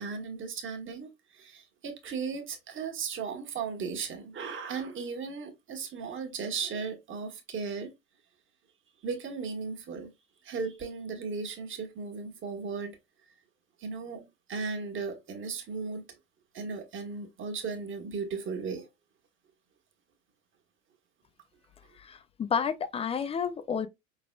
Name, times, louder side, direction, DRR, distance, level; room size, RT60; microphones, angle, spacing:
voice 1, 0.0-7.9 9.0-10.1 10.4-13.0 13.8-16.0 16.5-18.9, right 5 dB, 30° right, 1.5 m, -36 dB
voice 2, 22.0-23.9, left 6 dB, 15° left, 0.4 m, -31 dB
5.4 x 4.0 x 2.3 m
hypercardioid pair, 80°, 42 cm